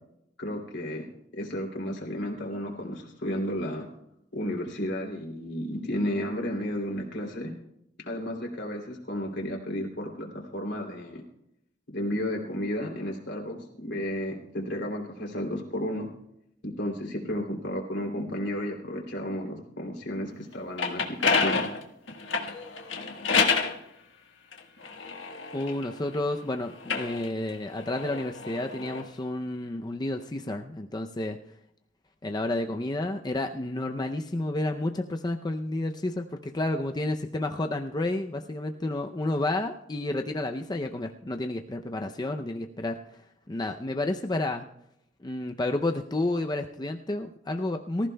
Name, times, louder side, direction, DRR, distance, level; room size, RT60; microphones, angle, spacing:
voice 1, 0.4-1.0 1.3-3.8 4.3-7.5 8.0-11.2 11.9-16.1 16.6-21.6, equal, 65° left, 0 dB, 2.9 m, -33 dB
sound 1, 20.5-23.8 24.5-26.2 26.7-29.0, left 5 dB, 80° left, 1.4 m, -28 dB
voice 2, 25.5-31.4 32.2-43.2 43.5-44.7 45.2-48.1, left 2 dB, 20° left, 5 dB, 0.5 m, -30 dB
24.0 x 14.5 x 2.2 m, 0.81 s
head